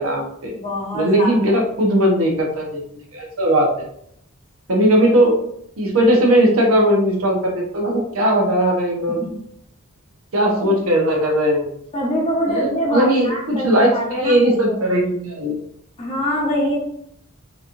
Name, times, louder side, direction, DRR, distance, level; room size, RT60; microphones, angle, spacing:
voice 1, 0.0-0.5 0.9-2.8 3.1-3.7 4.7-5.3 5.8-9.2 10.3-11.7 12.5-15.5, right 1 dB, 75° right, 0 dB, 1.0 m, -18 dB
voice 2, 0.6-1.6 9.2-9.3 10.6-10.7 11.9-14.9 16.0-16.8, equal, 30° left, -3 dB, 1.0 m, -24 dB
4.1 x 2.9 x 2.6 m, 0.70 s
head